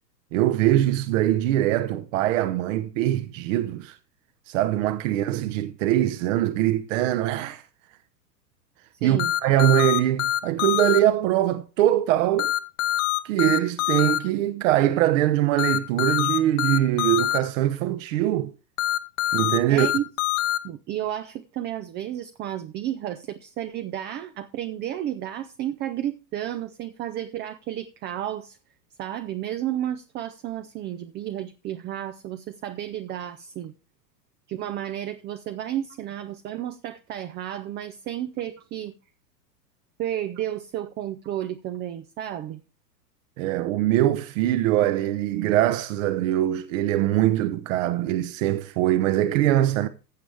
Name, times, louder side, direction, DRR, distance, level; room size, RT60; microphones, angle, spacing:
voice 1, 0.3-4.0 4.5-7.6 9.0-12.5 13.2-18.5 19.3-19.9 43.4-49.9, right 13 dB, 50° right, 1.0 m, -22 dB
voice 2, 9.0-9.3 19.2-19.4 19.7-20.0 20.6-28.6 29.0-33.7 34.5-38.9 40.0-42.6, right 11 dB, 20° right, 0.5 m, -32 dB
sound 1, 9.2-11.0 12.4-14.2 15.6-17.4 18.8-20.6, left 13 dB, 50° left, 1.1 m, -24 dB
15.0 x 7.4 x 3.4 m
hypercardioid pair, 105°, 50 cm